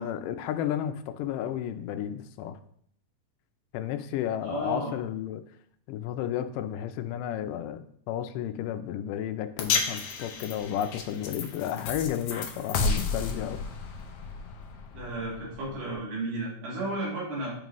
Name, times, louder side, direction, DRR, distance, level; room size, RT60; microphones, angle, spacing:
voice 1, 0.0-2.6 3.7-5.4 5.9-13.6, left 10 dB, 90° left, 9 dB, 2.2 m, -32 dB
voice 2, 4.4-4.9 14.9-17.5, right 1 dB, 85° right, -5 dB, 4.3 m, -33 dB
sound 1, 9.6-15.9, left 5 dB, 75° left, 1.4 m, -32 dB
9.2 x 5.3 x 3.1 m, 0.62 s
omnidirectional pair, 3.7 m